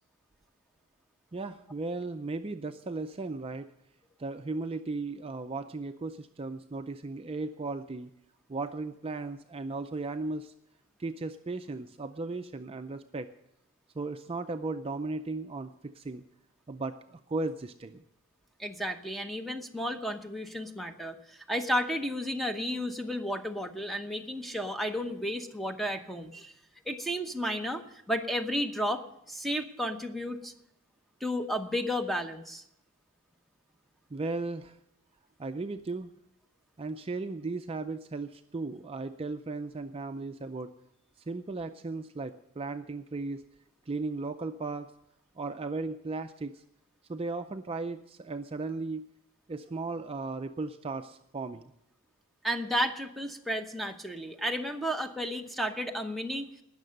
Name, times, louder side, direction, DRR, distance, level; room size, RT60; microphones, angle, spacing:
voice 1, 1.3-3.7 4.2-8.1 8.5-10.5 11.0-13.3 13.9-16.2 16.7-18.0 34.1-34.8 35.4-36.1 36.8-40.7 41.3-43.4 43.9-44.9 45.4-46.6 47.1-49.1 49.5-51.7, right 3 dB, 25° right, 8 dB, 0.4 m, -36 dB
voice 2, 18.6-26.5 26.9-30.5 31.2-32.6 52.4-56.6, equal, ahead, 6 dB, 0.8 m, -33 dB
19.0 x 6.7 x 6.5 m, 0.80 s
head